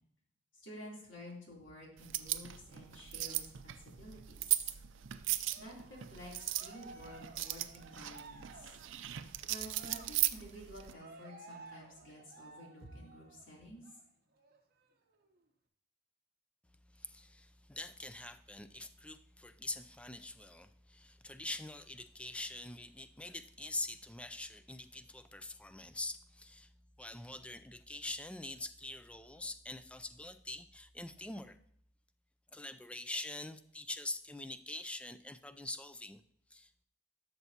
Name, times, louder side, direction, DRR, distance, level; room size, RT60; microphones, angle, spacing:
voice 1, 0.5-4.7 5.6-8.7 9.5-13.8, equal, 80° left, -3 dB, 3.2 m, -51 dB
sound 1, 2.0-10.9, right 15 dB, 80° right, 0.5 m, -38 dB
Cheering, 5.5-13.5 13.8-14.0 14.4-15.4, right 3 dB, 50° right, 0.9 m, -55 dB
voice 2, 17.0-26.7 27.0-31.6 32.5-36.2 36.5-36.8, left 2 dB, 5° left, 12 dB, 0.3 m, -44 dB
12.5 x 6.7 x 2.8 m, 0.70 s
head